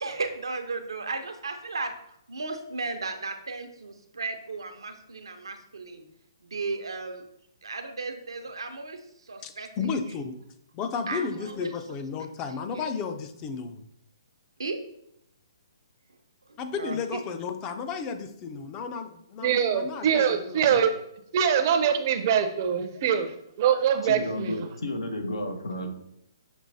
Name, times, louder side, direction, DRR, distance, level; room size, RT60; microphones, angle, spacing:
voice 1, 0.0-1.9 2.3-6.0 6.4-7.2 7.6-10.2 11.1-11.7 12.5-12.6 14.6-14.8 16.8-17.2, right 3 dB, 85° right, 6 dB, 0.7 m, -35 dB
voice 2, 9.4-10.4 10.7-13.8 16.6-20.6, left 5 dB, 25° left, 8 dB, 0.4 m, -33 dB
voice 3, 19.4-21.0 21.3-23.3 23.6-24.5, right 8 dB, 40° right, 8 dB, 0.5 m, -23 dB
voice 4, 24.0-25.9, left 1 dB, 85° left, 4 dB, 0.9 m, -32 dB
6.2 x 3.1 x 2.7 m, 0.76 s
hypercardioid pair, 140°, 2 cm